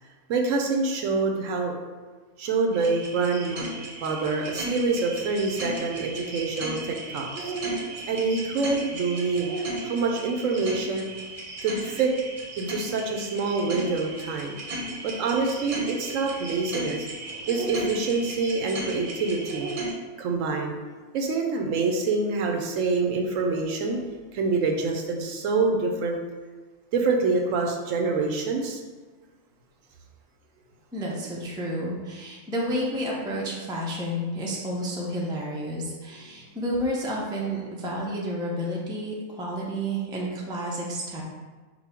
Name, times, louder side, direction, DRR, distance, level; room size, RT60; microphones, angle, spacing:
voice 1, 0.3-1.7 2.4-3.7 4.0-7.5 8.1-11.1 11.6-12.1 12.6-14.6 15.0-17.1 17.5-19.7 20.2-20.7 21.1-24.0 24.3-26.2 26.9-28.8 36.1-36.2, right 4 dB, 75° right, 2 dB, 1.0 m, -26 dB
sound 1, 2.7-19.9, right 2 dB, 45° right, 0.9 m, -35 dB
voice 2, 30.9-41.2, equal, 5° right, -3 dB, 0.4 m, -30 dB
5.4 x 2.3 x 4.4 m, 1.3 s
omnidirectional pair, 1.4 m